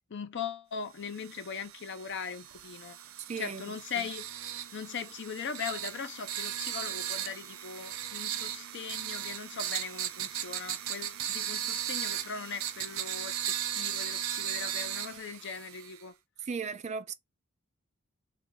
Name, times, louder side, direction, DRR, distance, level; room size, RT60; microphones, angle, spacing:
voice 1, 0.1-3.0 3.4-4.3 4.7-16.1, left 6 dB, 60° left, 0.6 m, -40 dB
sound 1, 1.1-16.0, right 10 dB, 90° right, 0.5 m, -37 dB
voice 2, 3.2-3.6 4.0-4.1 16.4-17.1, right 5 dB, 35° right, 0.4 m, -36 dB
3.0 x 2.5 x 3.6 m
head